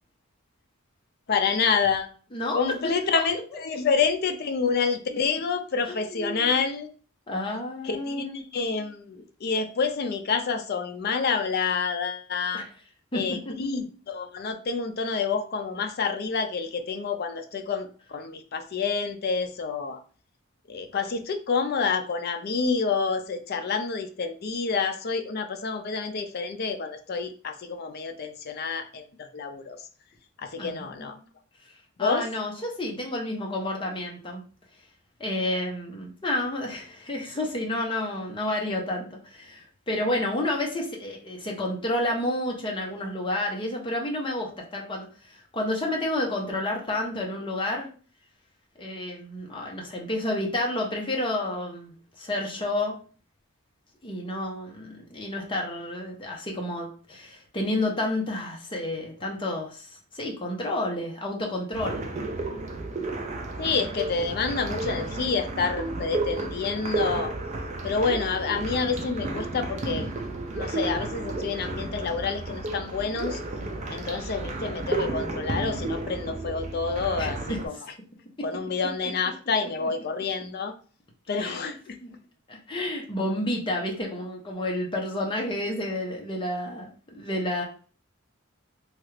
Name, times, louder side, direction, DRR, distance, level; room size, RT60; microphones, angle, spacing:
voice 1, 1.3-2.1 2.5-6.9 7.8-12.6 13.1-20.0 20.7-29.8 30.4-31.2 32.0-32.3 63.6-67.4 67.8-70.1 70.5-73.4 73.9-77.8 78.4-80.7 81.3-82.0, left 5 dB, 50° left, 8 dB, 0.4 m, -28 dB
voice 2, 2.3-2.6 5.1-5.2 5.9-6.6 7.3-8.4 12.5-12.7 13.1-13.2 30.6-31.1 32.0-34.4 35.2-47.9 48.8-53.0 54.0-62.1 77.2-77.6 79.8-79.9 81.4-81.7 82.0-82.1 82.5-87.6, left 1 dB, 25° left, -1 dB, 0.7 m, -30 dB
sound 1, 61.7-77.7, right 2 dB, 35° right, 0.4 m, -32 dB
3.0 x 2.4 x 3.1 m, 0.40 s
head